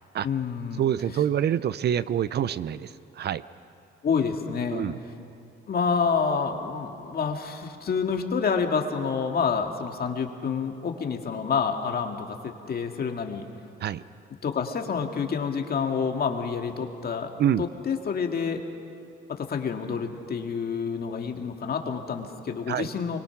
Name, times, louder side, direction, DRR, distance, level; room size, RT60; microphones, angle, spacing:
voice 1, 0.2-0.9 4.0-4.9 5.7-13.5 14.4-17.3 17.6-18.6 19.3-23.2, left 6 dB, 50° left, 4 dB, 2.0 m, -28 dB
voice 2, 0.8-3.4 4.7-5.0 13.8-14.0 17.4-17.7 22.7-22.9, right 10 dB, 55° right, 16 dB, 0.6 m, -26 dB
24.5 x 22.5 x 6.0 m, 2.6 s
cardioid pair, 90°, 20 cm